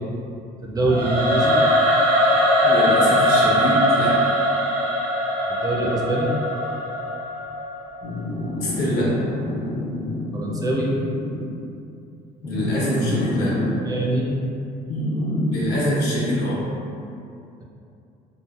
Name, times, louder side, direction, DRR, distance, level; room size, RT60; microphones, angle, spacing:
voice 1, 0.6-1.6 5.5-6.3 10.3-11.0 13.4-14.4, right 2 dB, 20° right, -3 dB, 0.4 m, -24 dB
Singing / Musical instrument, 0.9-8.0, equal, 80° right, 0.6 m, -20 dB
voice 2, 2.6-4.1 8.6-9.1 12.4-13.5 15.5-16.6, left 1 dB, 75° left, -7 dB, 0.9 m, -24 dB
sound 1, 8.0-11.6 12.5-13.7 14.9-15.6, left 1 dB, 40° left, 0.5 m, -28 dB
3.1 x 2.4 x 2.3 m, 2.6 s
cardioid pair, 110°, 17 cm